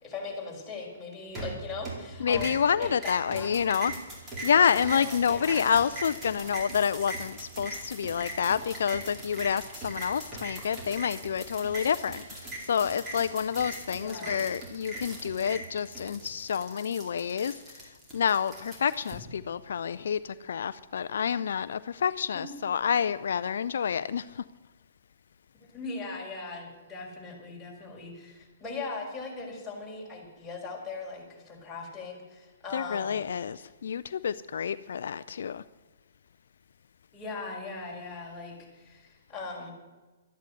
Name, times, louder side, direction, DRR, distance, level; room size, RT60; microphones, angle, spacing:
voice 1, 0.0-4.0 4.3-4.5 4.9-5.6 14.0-14.4 22.3-22.5 25.7-33.2 37.1-39.7, left 4 dB, 10° left, -4 dB, 5.4 m, -40 dB
sound 1, 1.4-2.1 2.3-19.1, right 2 dB, 20° right, 4.8 m, -40 dB
voice 2, 2.2-3.9 4.2-24.4 32.7-35.6, left 7 dB, 70° left, 13 dB, 0.4 m, -28 dB
13.5 x 11.0 x 8.1 m, 1.2 s
hypercardioid pair, 125°, 0 cm